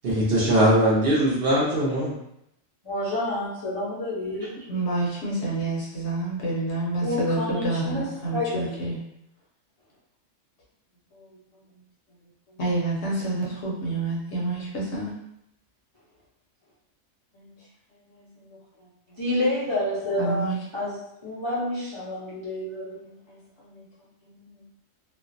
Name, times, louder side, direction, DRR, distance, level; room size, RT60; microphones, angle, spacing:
voice 1, 0.0-2.1, right 1 dB, 60° right, -6 dB, 0.8 m, -21 dB
voice 2, 2.8-4.5 7.0-8.1 8.3-8.8 19.2-21.0 21.2-23.0, left 1 dB, 35° left, -11 dB, 0.5 m, -28 dB
voice 3, 4.7-9.0 11.1-11.6 12.5-15.1 17.3-17.6 17.9-19.2 20.2-20.6 23.0-23.9 24.2-24.7, right 2 dB, 65° left, -4 dB, 0.9 m, -29 dB
2.5 x 2.0 x 2.5 m, 0.80 s
omnidirectional pair, 1.3 m